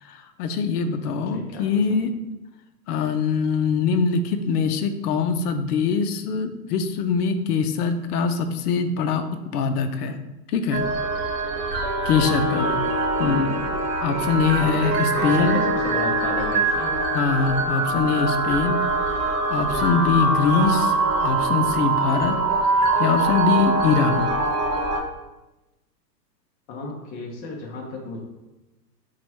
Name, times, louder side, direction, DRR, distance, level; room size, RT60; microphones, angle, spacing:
voice 1, 0.0-2.1 2.9-9.3 9.5-10.2 10.5-10.9 12.1-12.7 13.2-13.6 14.0-15.6 17.1-20.9 21.2-22.4 23.0-24.3, left 5 dB, 65° left, 8 dB, 0.6 m, -23 dB
voice 2, 1.3-1.6 1.9-2.0 12.5-12.8 14.6-14.7 15.2-16.9 26.7-28.2, left 2 dB, 20° left, -1 dB, 0.5 m, -34 dB
sound 1, 10.7-25.0, right 2 dB, 35° right, 0.7 m, -23 dB
3.0 x 2.3 x 4.3 m, 1.0 s
hypercardioid pair, 120°, 50 cm